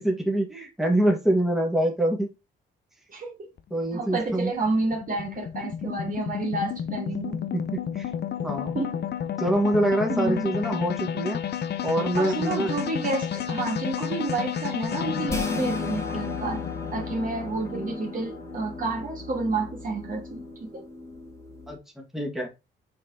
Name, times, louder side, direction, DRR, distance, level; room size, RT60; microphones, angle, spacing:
voice 1, 0.0-2.3 3.7-4.5 7.5-8.1 8.4-8.7 9.4-11.4 11.8-12.7 21.7-22.5, right 1 dB, ahead, 2.3 m, -25 dB
voice 2, 3.1-3.5 3.9-7.4 8.7-9.0 10.1-10.5 12.2-16.6 16.9-20.9, right 3 dB, 45° right, 3.0 m, -30 dB
sound 1, 3.6-20.0, left 9 dB, 55° left, 0.9 m, -32 dB
sound 2, 15.3-21.8, left 2 dB, 15° left, 2.1 m, -36 dB
6.7 x 4.7 x 4.2 m
cardioid pair, 90°, 20 cm